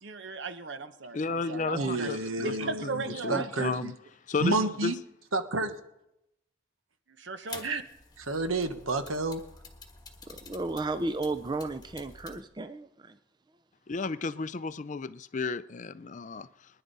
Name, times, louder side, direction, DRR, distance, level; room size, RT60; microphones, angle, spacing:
voice 1, 0.0-2.1 2.4-3.8 7.2-7.8, right 4 dB, 60° right, 0.9 m, -37 dB
voice 2, 1.1-2.7 3.2-3.9 4.3-4.9 13.9-16.5, left 4 dB, 35° left, 0.4 m, -33 dB
voice 3, 1.7-3.9 4.4-5.0 5.3-5.7 7.6-7.8 8.2-9.4, right 2 dB, 90° right, 1.2 m, -30 dB
sound 1, 7.5-12.4, left 4 dB, 20° left, 1.5 m, -48 dB
voice 4, 10.3-13.2, right 2 dB, 20° right, 0.4 m, -33 dB
23.0 x 10.5 x 4.1 m
head